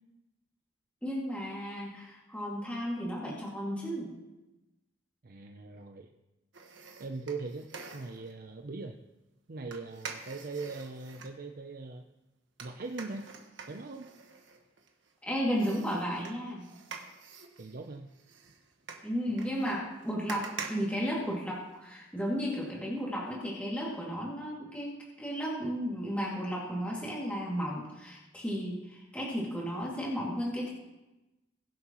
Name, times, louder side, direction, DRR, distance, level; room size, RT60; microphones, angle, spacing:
voice 1, 1.0-4.1 15.2-16.6 19.0-30.7, equal, 5° left, -5 dB, 2.4 m, -34 dB
voice 2, 5.2-6.1 7.0-7.7 7.9-9.0 9.5-12.0 12.6-13.3 13.7-14.1 17.6-18.1, right 3 dB, 50° right, 4 dB, 0.6 m, -40 dB
sound 1, 6.5-8.3 9.7-11.4 12.6-15.1 15.6-21.8 22.2-22.3, right 5 dB, 75° right, 1.4 m, -46 dB
22.0 x 7.7 x 3.1 m, 1.0 s
head